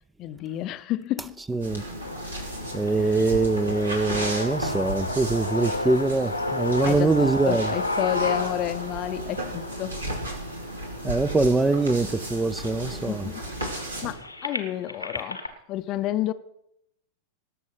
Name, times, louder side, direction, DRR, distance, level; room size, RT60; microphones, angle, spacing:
voice 1, 0.2-1.4 3.0-3.2 6.8-10.0 12.9-15.4 15.7-16.3, left 13 dB, 35° left, 0.7 m, -30 dB
voice 2, 1.5-1.8 2.7-7.7 11.0-13.3, right 3 dB, 10° right, 0.6 m, -23 dB
sound 1, 1.6-14.1, right 1 dB, 80° right, 3.2 m, -34 dB
sound 2, 2.0-12.0 12.7-12.8 13.0-15.5, left 2 dB, 85° left, 1.3 m, -33 dB
19.0 x 7.1 x 5.8 m
figure-of-eight pair, 90°, 0 cm